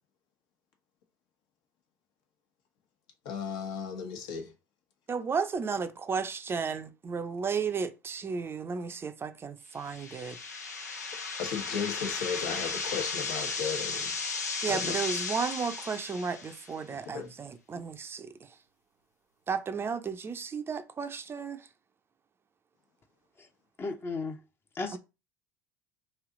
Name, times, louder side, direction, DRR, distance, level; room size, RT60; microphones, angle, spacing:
voice 1, 3.2-4.5 11.4-14.2 14.7-15.0 17.1-17.3, left 7 dB, 60° left, 1.1 m, -35 dB
voice 2, 5.1-10.4 14.6-18.3 19.5-21.6 24.9-25.0, right 5 dB, 25° right, 0.6 m, -33 dB
sound 1, 9.8-16.7, left 4 dB, 90° left, 0.6 m, -35 dB
voice 3, 23.8-24.4 24.8-25.0, left 3 dB, 25° left, 0.8 m, -34 dB
3.2 x 2.8 x 3.7 m
hypercardioid pair, 70°, 9 cm